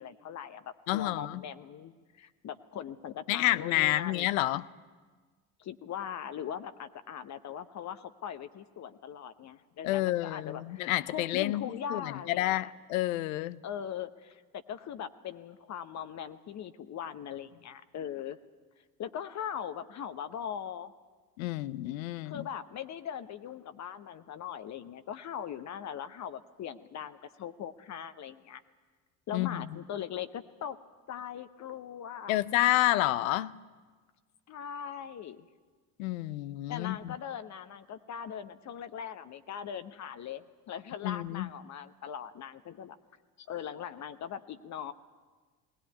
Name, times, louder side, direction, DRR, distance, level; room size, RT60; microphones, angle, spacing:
voice 1, 0.0-4.3 5.6-12.7 13.6-14.4 14.7-18.4 19.0-20.9 22.2-28.6 29.3-30.8 31.1-32.4 34.5-35.5 36.7-43.0 43.4-44.9, left 9 dB, 40° left, 1.0 m, -40 dB
voice 2, 0.9-1.4 3.3-4.7 9.8-13.6 21.4-22.4 29.3-29.7 32.3-33.5 36.0-37.1 41.0-41.5, left 16 dB, 60° left, 0.7 m, -29 dB
20.0 x 19.0 x 9.4 m
figure-of-eight pair, 60°, 45 cm